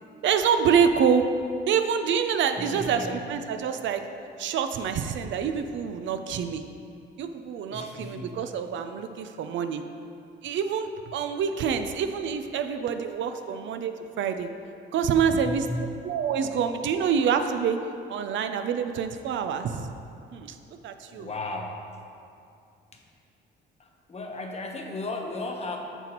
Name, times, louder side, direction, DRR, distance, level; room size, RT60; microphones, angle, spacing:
voice 1, 0.2-1.3 1.7-4.0 4.4-6.6 7.2-9.8 10.4-13.9 14.2-14.5 14.9-15.7 16.0-17.8 18.1-19.9 20.3-20.6 20.8-21.3, right 7 dB, 70° right, 8 dB, 0.5 m, -26 dB
voice 2, 2.6-3.3 7.7-8.5 15.4-16.0 21.1-21.9 22.9-23.0 23.8-25.8, left 2 dB, 30° left, 2 dB, 0.9 m, -35 dB
8.9 x 6.0 x 2.9 m, 2.5 s
cardioid pair, 90°, 20 cm